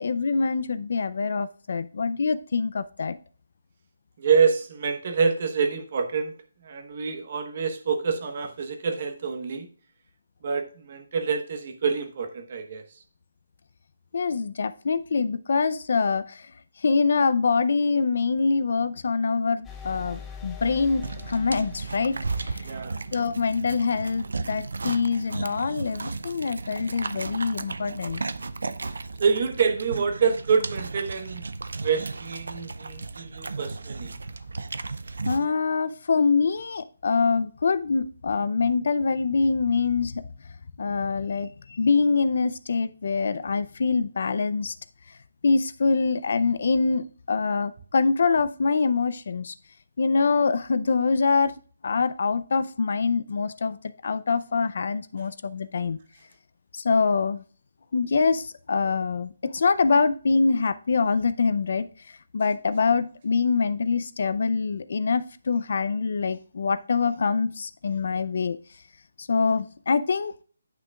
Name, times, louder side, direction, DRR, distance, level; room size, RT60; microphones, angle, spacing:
voice 1, 0.0-3.2 14.1-16.4 16.8-22.2 22.4-22.6 23.1-28.2 28.8-28.9 35.3-40.2 40.8-44.7 45.4-49.5 50.0-51.5 51.8-53.8 54.0-56.0 56.7-57.4 57.9-61.9 62.3-68.6 69.2-70.3, left 4 dB, 55° left, 14 dB, 0.5 m, -24 dB
voice 2, 4.2-6.3 6.6-9.7 10.4-13.0 22.6-23.0 29.2-31.4 31.8-34.1 55.2-55.3, right 5 dB, 35° right, 6 dB, 1.0 m, -26 dB
sound 1, 19.6-23.4, left 6 dB, 5° left, 0.6 m, -43 dB
sound 2, 21.0-35.5, right 3 dB, 80° right, 0.5 m, -35 dB
9.7 x 5.8 x 2.3 m, 0.41 s
hypercardioid pair, 170°, 0 cm